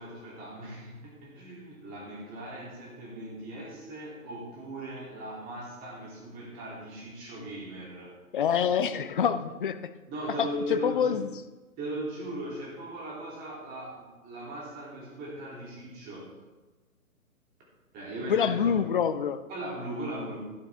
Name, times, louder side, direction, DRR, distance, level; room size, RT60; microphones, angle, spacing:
voice 1, 0.0-8.2 10.1-11.2 11.8-16.3 17.9-18.8 19.5-20.4, right 1 dB, 20° right, -4 dB, 3.2 m, -38 dB
voice 2, 8.3-9.8 10.4-11.3 18.3-19.4, left 7 dB, 35° left, 12 dB, 0.5 m, -26 dB
12.0 x 10.0 x 3.6 m, 1.2 s
figure-of-eight pair, 125°, 44 cm